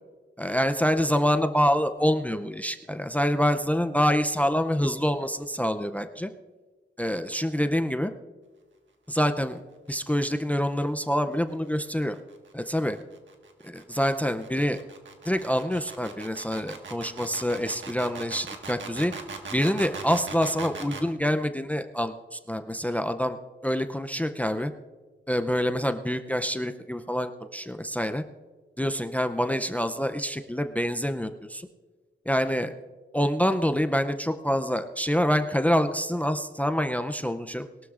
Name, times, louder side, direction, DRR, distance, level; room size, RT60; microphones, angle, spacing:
voice 1, 0.4-6.3 7.0-8.1 9.1-9.6 9.9-12.2 12.5-13.0 13.6-14.8 15.3-19.1 19.5-24.7 25.3-28.2 28.8-31.7 32.3-32.7 33.1-37.7, equal, 10° left, 8 dB, 0.4 m, -26 dB
sound 1, 11.8-21.1, right 4 dB, 80° right, 1.5 m, -40 dB
21.0 x 12.5 x 2.4 m, 1.3 s
wide cardioid pair, 165°, 19 cm